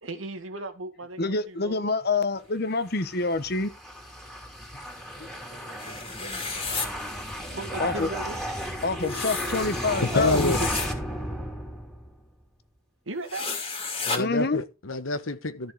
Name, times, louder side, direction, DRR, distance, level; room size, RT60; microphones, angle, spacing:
voice 1, 0.0-1.7 5.1-6.4 7.2-8.6 9.3-9.5 13.1-13.5, right 2 dB, 85° right, 2.0 m, -38 dB
voice 2, 1.2-3.7 5.2-5.3 7.8-8.1 8.8-10.7 14.2-14.6, left 3 dB, 50° left, 1.2 m, -26 dB
sound 1, 2.8-12.2, equal, 5° left, 2.9 m, -34 dB
sound 2, 5.8-6.9 9.0-10.9 13.3-14.2, left 4 dB, 30° left, 2.5 m, -32 dB
voice 3, 10.0-10.6 14.0-15.7, left 2 dB, 90° left, 1.3 m, -27 dB
13.5 x 6.4 x 4.8 m
head